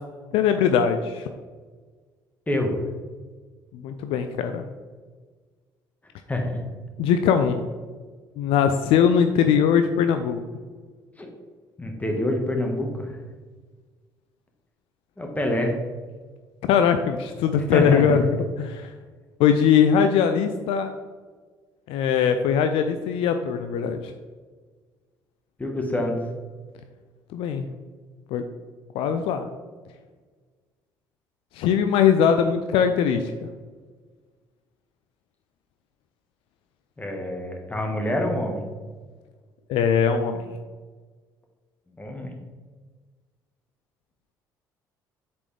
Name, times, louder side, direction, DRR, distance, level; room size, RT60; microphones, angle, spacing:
voice 1, 0.3-1.3 3.7-4.7 7.0-7.7 8.4-10.4 16.7-18.2 18.6-18.9 19.4-20.9 21.9-24.1 27.3-27.7 28.3-28.4 28.9-29.5 31.5-33.3 39.7-40.5, left 7 dB, 60° left, 8 dB, 0.4 m, -21 dB
voice 2, 2.5-2.8 6.3-6.6 11.2-11.3 11.8-13.2 15.2-15.8 17.7-18.2 25.6-26.1 37.0-38.7 42.0-42.3, left 1 dB, 15° left, 2 dB, 1.4 m, -26 dB
7.3 x 4.3 x 3.3 m, 1.5 s
figure-of-eight pair, 50°, 10 cm